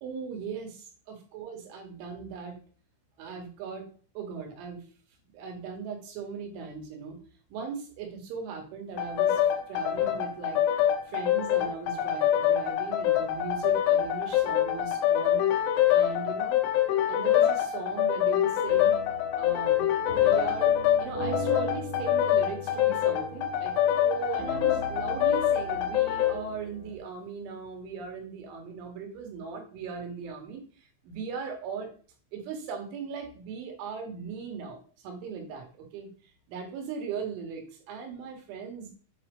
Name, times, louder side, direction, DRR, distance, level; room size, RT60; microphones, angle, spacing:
voice 1, 0.0-2.6 3.2-3.9 4.2-4.9 5.3-7.2 7.5-9.4 9.7-10.6 11.1-15.5 15.9-16.6 17.1-19.0 19.4-19.9 20.2-20.8 21.0-31.9 32.3-36.1 36.5-38.9, right 6 dB, 70° right, 2 dB, 4.1 m, -38 dB
sound 1, 9.0-26.4, left 11 dB, 75° left, 3.2 m, -25 dB
sound 2, 18.7-27.0, equal, 30° right, 1.1 m, -39 dB
9.2 x 4.3 x 5.1 m, 0.40 s
omnidirectional pair, 5.8 m